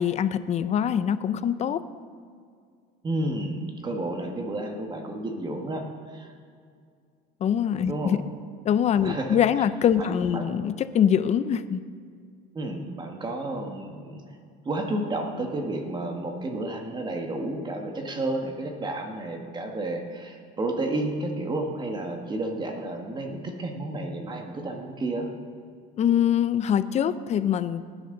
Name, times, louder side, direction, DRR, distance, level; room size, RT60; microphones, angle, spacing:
voice 1, 0.0-1.8 7.4-8.2 8.6-11.8 26.0-27.8, left 9 dB, 35° left, 14 dB, 0.5 m, -23 dB
voice 2, 3.0-6.3 7.9-8.1 9.0-9.4 10.0-10.5 12.5-14.2 14.6-25.3, right 2 dB, 20° right, 3 dB, 1.5 m, -31 dB
18.5 x 10.5 x 3.9 m, 2.2 s
cardioid pair, 130°, 21 cm